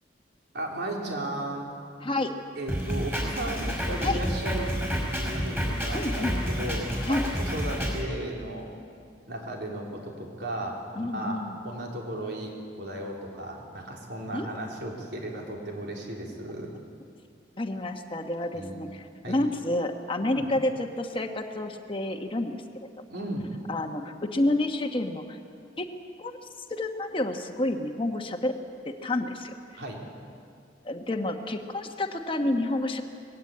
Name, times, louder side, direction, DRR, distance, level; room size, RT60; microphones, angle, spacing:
voice 1, 0.5-1.7 2.6-4.7 5.1-8.7 9.3-12.5 12.8-16.8 18.5-18.7 19.2-19.4 20.2-20.5 23.1-23.5 29.7-30.0, right 1 dB, 65° right, -1 dB, 4.0 m, -35 dB
voice 2, 2.0-2.3 4.0-4.2 5.9-6.3 7.0-7.2 10.9-11.6 14.3-14.5 17.6-22.9 23.7-25.4 25.8-25.9 26.2-26.4 26.7-28.5 28.8-29.5 30.8-33.0, left 1 dB, 30° left, 5 dB, 1.2 m, -29 dB
Drum kit, 2.7-8.0, equal, 10° right, 5.1 m, -29 dB
21.5 x 16.5 x 8.6 m, 2.4 s
head